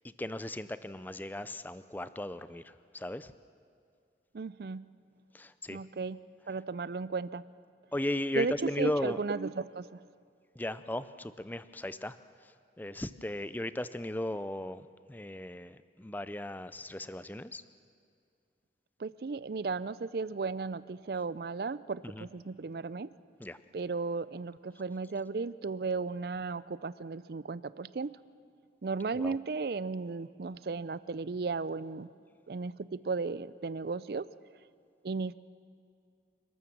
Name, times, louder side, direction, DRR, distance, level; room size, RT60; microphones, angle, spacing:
voice 1, 0.2-3.3 5.3-5.8 7.9-9.2 10.6-12.2 12.4-17.6 22.0-22.3 23.4-23.6 29.1-29.4, left 1 dB, 10° left, 14 dB, 0.4 m, -36 dB
voice 2, 4.3-4.9 5.7-6.2 6.5-7.4 8.4-10.0 19.0-23.1 23.7-28.2 28.8-32.1 32.5-34.3 35.0-35.3, right 4 dB, 55° right, 17 dB, 0.4 m, -35 dB
28.5 x 13.0 x 7.3 m, 2.3 s
head